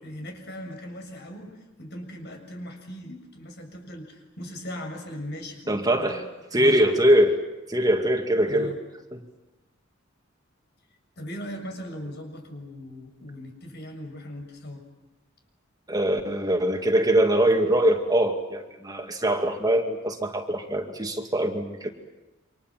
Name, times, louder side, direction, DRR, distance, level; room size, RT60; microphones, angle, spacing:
voice 1, 0.0-6.2 6.5-6.8 8.5-8.8 11.2-14.8, left 1 dB, 55° left, 5 dB, 7.0 m, -39 dB
voice 2, 5.7-6.2 6.5-7.4 7.7-8.7 9.1-9.2 15.9-21.9, right 1 dB, 20° right, 3 dB, 2.3 m, -22 dB
29.0 x 26.0 x 7.6 m, 1.0 s
head